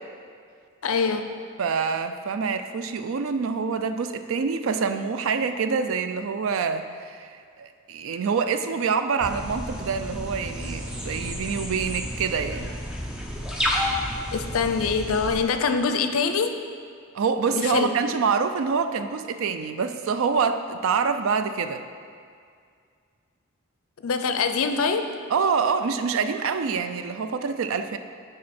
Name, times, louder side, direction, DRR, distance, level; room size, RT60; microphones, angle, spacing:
voice 1, 0.8-1.2 14.3-16.6 17.5-17.9 24.0-25.1, left 5 dB, 75° left, 7 dB, 0.5 m, -24 dB
voice 2, 1.6-12.8 17.1-21.8 25.3-28.0, right 5 dB, 70° right, 9 dB, 0.4 m, -26 dB
sound 1, 9.2-15.4, left 1 dB, 5° right, 0.5 m, -31 dB
7.5 x 5.1 x 4.2 m, 2.2 s
head